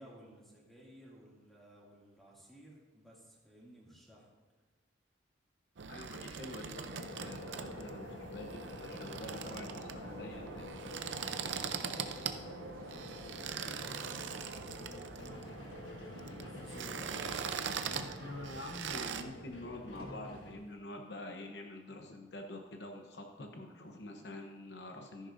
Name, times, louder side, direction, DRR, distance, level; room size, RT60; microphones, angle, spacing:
voice 1, 0.0-4.3 11.8-18.1, equal, ahead, -5 dB, 2.3 m, -56 dB
sound 1, 5.8-19.2, right 6 dB, 75° right, 0.6 m, -42 dB
voice 2, 5.9-10.7 17.9-25.3, left 1 dB, 60° left, 3 dB, 0.9 m, -46 dB
sound 2, 6.9-20.5, left 2 dB, 85° left, 1.3 m, -48 dB
sound 3, 9.7-20.9 21.2-21.3, equal, 50° right, 2.6 m, -61 dB
13.5 x 10.5 x 2.6 m, 1.3 s
head